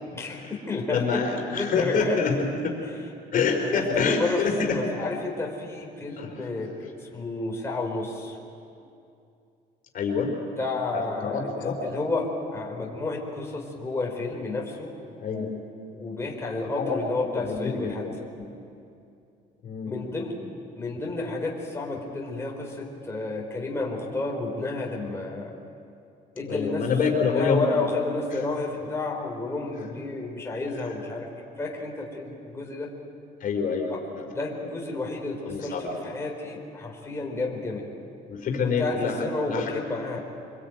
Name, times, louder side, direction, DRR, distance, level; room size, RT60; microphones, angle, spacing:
voice 1, 0.1-1.2 1.5-2.2 3.6-6.7 7.0-8.4 10.6-14.9 15.9-18.1 19.9-20.3 20.8-25.5 26.3-26.9 27.4-31.3 31.6-32.9 33.9-34.0 34.3-35.7 36.0-37.9 38.6-40.2, left 3 dB, 15° left, -1 dB, 4.3 m, -31 dB
voice 2, 0.9-2.8 3.3-4.8 6.2-6.5 9.9-10.4 10.9-11.8 15.2-15.5 16.7-17.0 17.3-18.5 19.6-19.9 26.5-27.7 28.3-28.4 30.8-30.9 33.4-34.2 35.5-36.0 38.3-39.8, left 5 dB, 55° left, 1 dB, 4.8 m, -27 dB
26.0 x 21.0 x 9.2 m, 2.6 s
cardioid pair, 110°, 17 cm